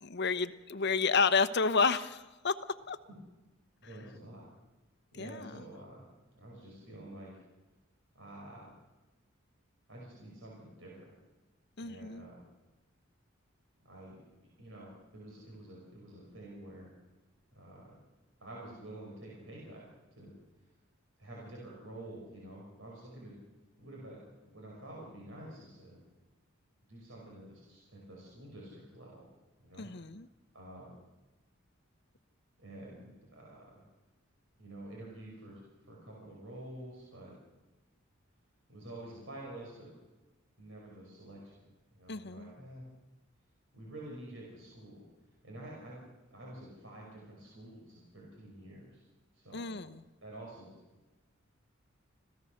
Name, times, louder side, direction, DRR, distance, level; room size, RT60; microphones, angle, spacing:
voice 1, 0.0-2.5 2.9-3.0 5.2-5.6 11.8-12.3 29.8-30.3 42.1-42.5 49.5-50.0, left 5 dB, 55° left, 11 dB, 1.0 m, -30 dB
voice 2, 3.8-4.4 5.1-6.1 6.3-7.3 8.2-8.7 9.9-11.1 11.8-12.4 13.8-16.9 17.5-18.0 18.4-19.8 20.2-20.3 21.2-23.4 23.8-26.0 26.9-29.3 29.6-29.9 30.5-30.9 32.6-33.8 34.6-37.3 38.7-39.9 40.6-41.5 41.9-42.9 43.7-45.0 45.4-46.0 46.3-49.0 49.3-49.7 50.2-50.7, right 1 dB, 70° right, -3 dB, 5.5 m, -49 dB
26.5 x 16.5 x 6.6 m, 1.1 s
head